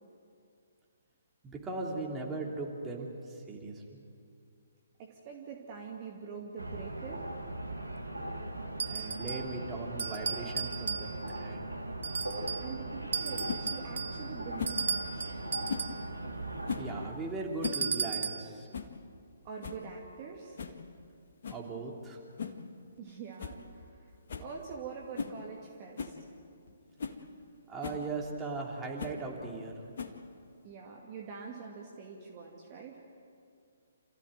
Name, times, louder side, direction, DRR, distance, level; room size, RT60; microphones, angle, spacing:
voice 1, 1.4-4.0 8.9-11.1 11.3-11.7 16.8-18.7 21.5-22.2 27.7-29.7, right 3 dB, 15° right, -2 dB, 3.3 m, -38 dB
voice 2, 5.0-7.3 12.6-15.3 19.4-20.6 23.0-24.1 24.4-26.3 30.6-33.0, right 6 dB, 30° right, 0 dB, 2.4 m, -45 dB
sound 1, 6.6-17.1, right 1 dB, 90° right, 2.2 m, -39 dB
sound 2, 8.8-9.6 10.0-11.4 12.0-12.7 13.1-16.1 17.6-18.5, right 6 dB, 60° right, 0.8 m, -35 dB
sound 3, 13.5-13.6 14.6-14.8 15.7-15.9 16.6-16.9 17.4-17.9 18.1-18.2 18.7-19.0 19.3-19.4 19.6-19.9 20.6-20.8 21.4-21.7 22.4-22.6 23.0-23.1 23.4-23.6 23.9-24.0 24.3-24.5 25.1-25.4 26.0-26.2 26.7-26.8 27.0-27.2 27.8-28.0 29.0-29.2 30.0-30.3, left 6 dB, 55° left, 1.9 m, -38 dB
28.0 x 15.0 x 9.2 m, 2.4 s
figure-of-eight pair, 130°, 0 cm